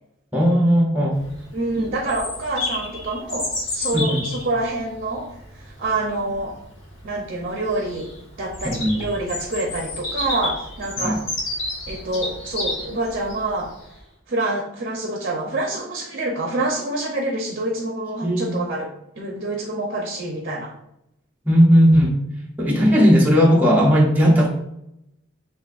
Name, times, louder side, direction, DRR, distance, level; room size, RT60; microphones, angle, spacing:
voice 1, 0.3-1.2 3.9-4.2 8.6-9.0 11.0-11.2 18.2-18.5 21.4-22.1 22.6-24.5, equal, 10° right, -4 dB, 0.6 m, -16 dB
Bird vocalization bird call bird song, 1.1-13.9, left 2 dB, 65° left, 1.4 m, -31 dB
voice 2, 1.5-5.3 5.6-6.6 7.0-8.1 8.4-11.2 11.9-13.7 14.3-18.9 19.2-20.7 22.8-23.1, right 2 dB, 45° right, 1 dB, 0.7 m, -27 dB
6.7 x 2.5 x 2.5 m, 0.80 s
head